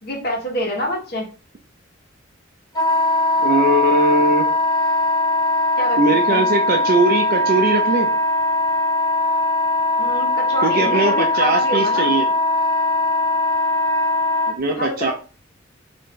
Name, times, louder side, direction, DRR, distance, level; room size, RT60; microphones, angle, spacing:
voice 1, 0.0-1.3 5.8-6.0 6.3-6.5 10.0-12.1 14.8-15.1, left 1 dB, 55° left, -1 dB, 1.0 m, -26 dB
Wind instrument woodwind instrument, 2.7-14.5, left 2 dB, 20° left, 0.8 m, -20 dB
voice 2, 3.4-4.5 6.0-8.1 10.6-12.3 14.5-15.1, right 2 dB, 50° right, 3 dB, 0.4 m, -20 dB
2.6 x 2.3 x 3.6 m, 0.35 s
head